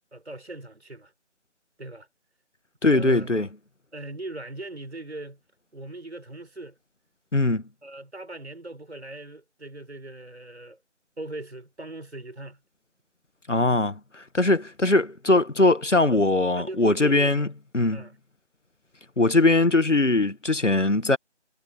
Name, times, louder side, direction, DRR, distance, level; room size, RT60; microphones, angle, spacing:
voice 1, 0.1-1.1 1.8-2.1 2.9-3.5 3.9-5.4 5.7-6.8 7.8-10.8 11.2-12.6 16.1-17.5 17.9-18.2, right 2 dB, 65° right, 6.2 m, -39 dB
voice 2, 2.8-3.5 7.3-7.6 13.5-17.5 17.7-18.0 19.2-21.2, left 2 dB, 85° left, 1.7 m, -21 dB
figure-of-eight pair, 165°, 35 cm